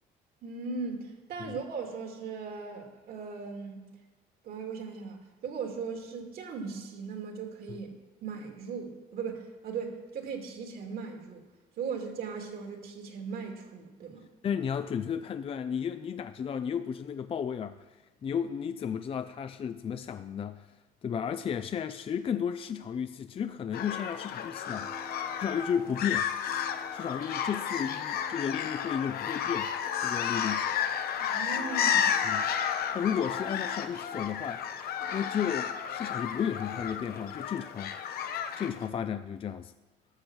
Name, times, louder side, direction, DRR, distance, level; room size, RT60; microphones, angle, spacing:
voice 1, 0.4-3.9 4.4-7.9 8.2-11.4 11.8-14.2 31.2-32.4, right 5 dB, 65° right, 3 dB, 2.5 m, -38 dB
voice 2, 14.4-17.7 18.2-20.7 21.0-26.3 26.9-29.7 30.0-30.7 32.2-32.5 32.9-34.7 35.1-37.9 38.6-39.7, left 8 dB, 35° left, 10 dB, 0.4 m, -33 dB
sound 1, 23.7-38.9, left 8 dB, 65° left, 0.9 m, -32 dB
sound 2, 24.7-38.4, equal, 15° left, 1.3 m, -50 dB
13.0 x 7.0 x 6.2 m, 1.1 s
cardioid pair, 110°, 17 cm